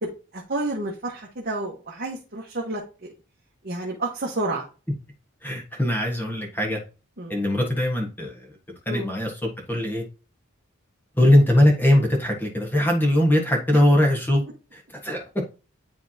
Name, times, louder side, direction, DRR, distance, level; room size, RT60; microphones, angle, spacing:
voice 1, 0.0-3.1 3.6-4.7 7.2-7.4 8.9-9.1, right 2 dB, 45° right, 1.3 m, -30 dB
voice 2, 5.4-6.8 7.3-8.4 8.8-9.3 9.7-10.0 11.2-14.4 14.7-15.2, left 1 dB, 10° left, 1.4 m, -21 dB
10.0 x 3.5 x 2.8 m
head